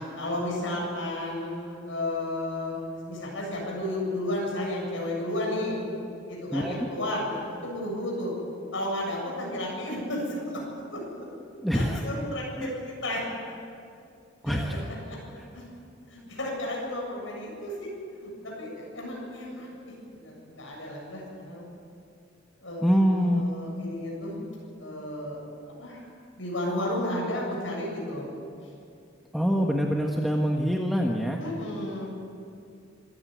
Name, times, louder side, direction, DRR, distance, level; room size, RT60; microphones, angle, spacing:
voice 1, 0.0-5.8 6.3-8.3 8.7-10.6 10.9-11.2 11.7-13.5 14.4-14.6 15.1-15.2 15.5-15.6 16.1-17.9 18.2-21.6 22.6-24.4 24.8-25.4 25.8-26.0 26.4-28.3 31.4-32.1, left 1 dB, 75° left, -2 dB, 7.7 m, -33 dB
voice 2, 11.6-12.0 12.6-12.7 14.4-14.8 22.8-23.4 29.3-31.4, equal, ahead, 0 dB, 1.4 m, -24 dB
26.0 x 16.0 x 9.3 m, 2.4 s
head